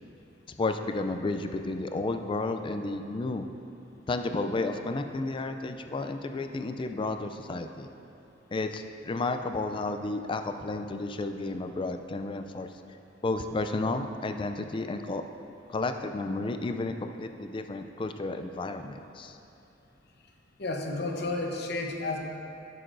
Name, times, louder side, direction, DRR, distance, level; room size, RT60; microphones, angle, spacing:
voice 1, 0.6-3.5 4.1-7.9 8.5-12.7 13.2-15.2 15.7-19.4, left 2 dB, 25° left, 7 dB, 0.3 m, -32 dB
voice 2, 20.6-22.2, left 2 dB, 60° left, 2 dB, 0.8 m, -31 dB
13.0 x 6.6 x 2.6 m, 2.8 s
head